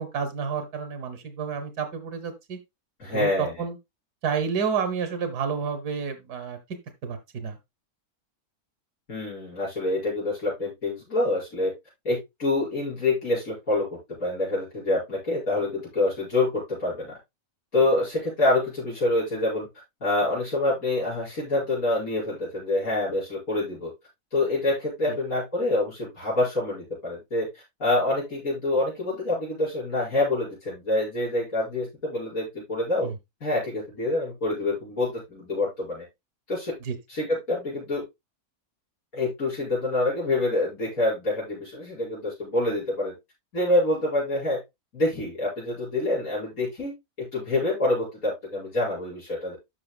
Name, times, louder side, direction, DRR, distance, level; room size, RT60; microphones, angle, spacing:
voice 1, 0.0-2.6 3.1-3.8 4.2-6.6 7.0-7.6 25.1-25.2 33.0-33.1 36.8-36.9, right 6 dB, 85° right, 7 dB, 1.7 m, -30 dB
voice 2, 3.0-3.6 9.1-11.7 12.1-17.1 17.7-19.7 20.0-23.9 24.3-33.1 33.4-36.1 36.5-36.8 37.1-38.0 39.1-43.1 43.5-44.6 44.9-46.9 47.2-49.6, left 2 dB, 65° left, -6 dB, 5.5 m, -26 dB
13.5 x 5.8 x 2.2 m, 0.21 s
omnidirectional pair, 1.6 m